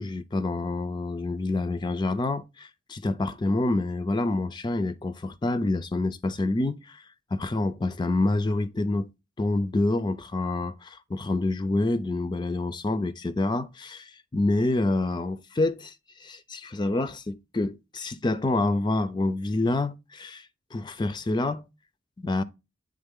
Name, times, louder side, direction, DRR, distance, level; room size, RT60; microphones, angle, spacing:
voice 1, 0.0-7.0 7.3-9.1 9.4-21.6 22.2-22.4, left 2 dB, 20° left, 0.4 m, -27 dB
8.9 x 3.6 x 3.5 m
head